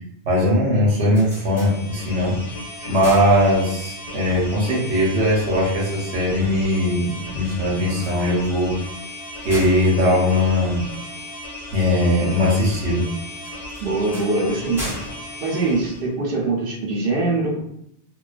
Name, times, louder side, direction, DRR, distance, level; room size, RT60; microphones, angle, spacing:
voice 1, 0.2-2.4 2.9-8.8 9.4-10.9 11.7-13.1, left 1 dB, 85° right, -5 dB, 1.1 m, -19 dB
sound 1, 1.0-2.3 2.7-4.0 7.8-11.3 13.4-16.4, equal, 5° right, 0.7 m, -38 dB
sound 2, 1.3-16.1, left 1 dB, 45° left, 0.7 m, -36 dB
voice 2, 13.8-14.8 15.4-17.6, right 2 dB, 65° right, -2 dB, 0.8 m, -22 dB
2.3 x 2.2 x 2.3 m, 0.74 s
omnidirectional pair, 1.1 m